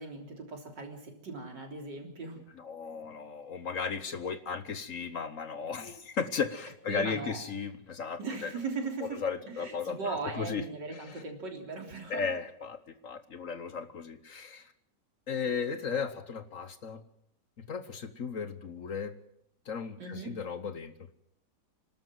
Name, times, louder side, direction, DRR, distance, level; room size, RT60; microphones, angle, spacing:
voice 1, 0.0-2.4 6.9-7.4 8.2-9.2 9.5-12.2 20.0-20.4, right 4 dB, 80° right, 2 dB, 4.1 m, -38 dB
voice 2, 2.5-8.5 9.0-10.6 10.9-11.2 12.1-12.8 13.0-14.7 15.3-17.0 17.6-19.1 19.7-21.1, left 5 dB, 50° left, 10 dB, 1.3 m, -35 dB
27.5 x 12.5 x 7.6 m, 0.75 s
omnidirectional pair, 1.9 m